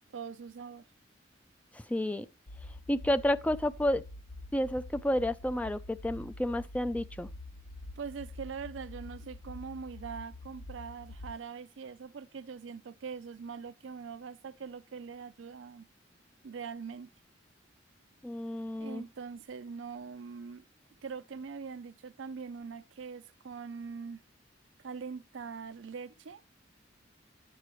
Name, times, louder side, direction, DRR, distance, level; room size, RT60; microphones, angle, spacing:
voice 1, 0.1-0.9 8.0-15.9 16.4-17.1 18.8-20.6 21.0-24.2 24.8-26.4, right 5 dB, 75° right, 0.5 m, -42 dB
voice 2, 1.7-2.3 2.9-4.0 4.5-7.3 18.2-19.0, left 1 dB, 5° left, 0.3 m, -30 dB
sound 1, 2.5-11.3, left 2 dB, 55° left, 0.8 m, -46 dB
9.7 x 7.5 x 3.1 m
head